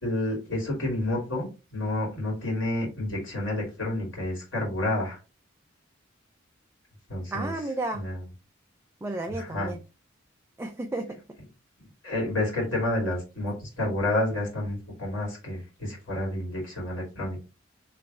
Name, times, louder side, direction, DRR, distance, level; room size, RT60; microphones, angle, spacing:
voice 1, 0.0-5.2 7.1-7.5 8.0-8.2 9.3-9.7 12.0-17.4, left 1 dB, 85° left, -2 dB, 2.3 m, -29 dB
voice 2, 7.3-8.1 9.0-9.8 10.6-11.2, right 2 dB, 15° right, 4 dB, 0.3 m, -32 dB
3.3 x 3.0 x 3.6 m, 0.31 s
head